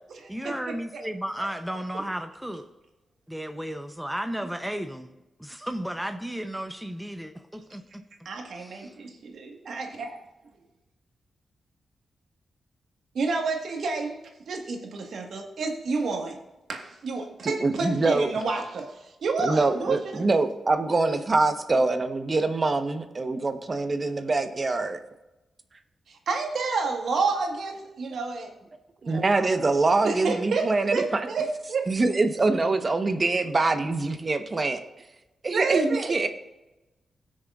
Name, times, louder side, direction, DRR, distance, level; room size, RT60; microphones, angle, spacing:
voice 1, 0.3-2.7 3.3-5.1 5.4-7.8 8.6-8.9, equal, 5° right, 0.7 m, -34 dB
voice 2, 8.2-10.2 13.1-16.3 16.7-20.3 26.1-28.5 29.1-29.6 30.0-31.9 35.5-36.3, right 4 dB, 75° right, 1.5 m, -30 dB
voice 3, 17.4-18.3 19.4-25.0 29.1-31.2 31.9-34.8 35.4-36.3, right 3 dB, 40° right, 1.0 m, -24 dB
17.5 x 6.4 x 2.5 m
cardioid pair, 65°, 0 cm